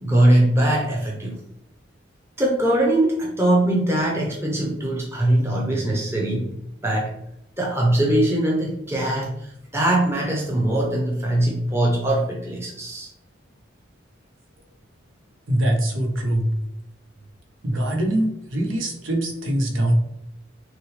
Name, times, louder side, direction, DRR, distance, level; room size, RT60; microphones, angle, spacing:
voice 1, 0.0-1.3 2.4-6.5 6.8-7.1 7.6-13.1, right 1 dB, 15° right, -3 dB, 0.7 m, -21 dB
voice 2, 15.5-16.5 17.6-19.9, right 1 dB, 85° right, 1 dB, 1.0 m, -23 dB
6.0 x 2.3 x 3.2 m, 0.76 s
head